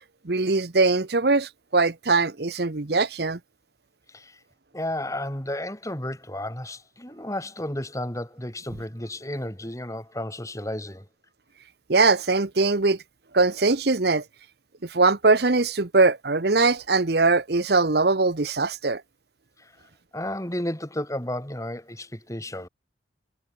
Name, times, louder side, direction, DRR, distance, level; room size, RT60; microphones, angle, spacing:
voice 1, 0.2-3.4 11.9-13.0 13.3-14.2 14.9-19.0, right 3 dB, 55° right, 1.0 m, -21 dB
voice 2, 4.1-4.4 4.7-11.1 19.6-22.7, left 1 dB, 15° left, 3.7 m, -33 dB
head